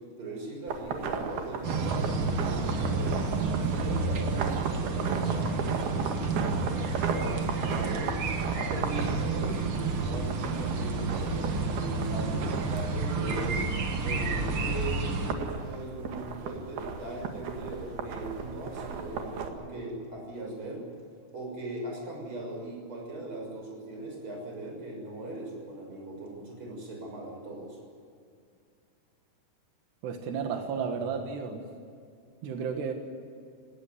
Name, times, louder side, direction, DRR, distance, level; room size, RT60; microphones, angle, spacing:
voice 1, 0.2-8.2 8.5-13.6 14.0-20.8 21.3-27.8, right 2 dB, 30° right, 0 dB, 7.2 m, -39 dB
sound 1, 0.7-19.5, right 5 dB, 70° right, 3.7 m, -37 dB
sound 2, 1.6-15.3, right 3 dB, 45° right, 1.8 m, -30 dB
voice 2, 30.0-31.6 32.4-32.9, right 6 dB, 85° right, 5 dB, 3.8 m, -32 dB
19.0 x 18.5 x 9.7 m, 2.3 s
omnidirectional pair, 4.7 m